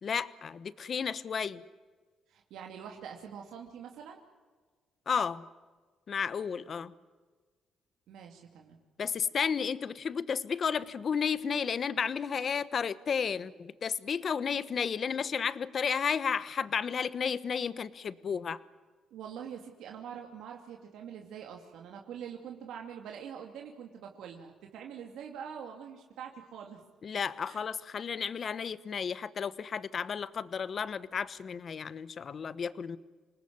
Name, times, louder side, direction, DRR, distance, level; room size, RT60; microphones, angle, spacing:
voice 1, 0.0-1.6 5.1-5.5 6.1-6.9 9.0-18.6 27.0-33.0, left 6 dB, 50° left, 16 dB, 1.2 m, -32 dB
voice 2, 2.3-4.2 8.1-8.8 19.1-26.8 27.4-27.6, right 8 dB, 85° right, 2 dB, 2.7 m, -44 dB
27.5 x 19.5 x 9.6 m, 1.4 s
cardioid pair, 90°, 0 cm